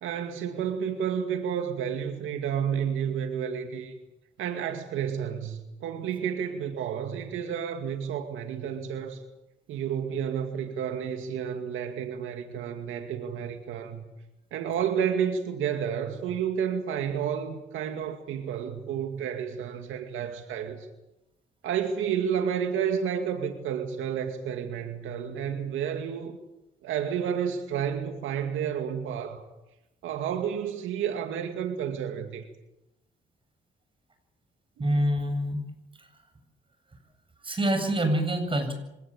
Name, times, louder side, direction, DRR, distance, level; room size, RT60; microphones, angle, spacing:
voice 1, 0.0-3.9 4.4-9.2 9.7-14.1 14.5-20.9 21.6-26.4 26.8-29.4 30.0-32.5 35.0-35.1, right 8 dB, 85° right, 2.3 m, -31 dB
voice 2, 34.8-35.6 36.0-36.1 37.4-38.7, right 1 dB, 25° right, 8.0 m, -26 dB
26.0 x 18.0 x 8.9 m
cardioid pair, 90°, 20 cm